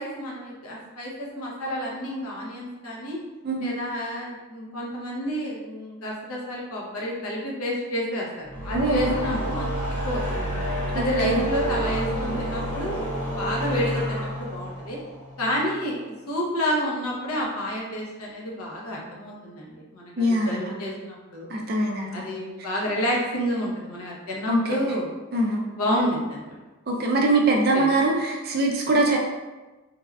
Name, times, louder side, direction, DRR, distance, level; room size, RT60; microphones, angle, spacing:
voice 1, 0.0-3.2 3.6-9.7 10.0-10.5 10.9-13.1 13.3-15.0 15.4-16.0 16.3-21.5 22.1-25.1 25.7-26.6 27.7-27.9, equal, 80° left, -3 dB, 0.7 m, -29 dB
sound 1, 8.4-15.8, right 1 dB, 10° left, 1.1 m, -29 dB
voice 2, 8.7-9.4 10.9-11.4 20.2-20.7 21.5-22.4 24.5-24.8 25.3-25.6 26.9-29.2, right 2 dB, 45° right, -1 dB, 0.4 m, -23 dB
3.3 x 2.2 x 2.3 m, 1.2 s
head